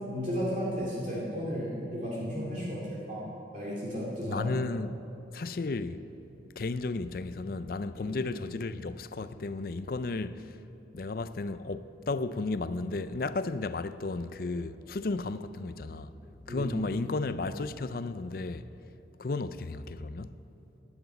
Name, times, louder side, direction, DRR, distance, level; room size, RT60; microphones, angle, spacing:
voice 1, 0.1-3.2 3.5-4.5 7.9-8.2 16.5-16.9, equal, 45° right, 2.4 m, -34 dB
voice 2, 4.3-5.0 5.3-6.0 6.6-10.5 10.9-16.1 16.5-18.7 19.2-20.3, left 3 dB, 50° left, 0.4 m, -33 dB
11.0 x 9.4 x 9.0 m
head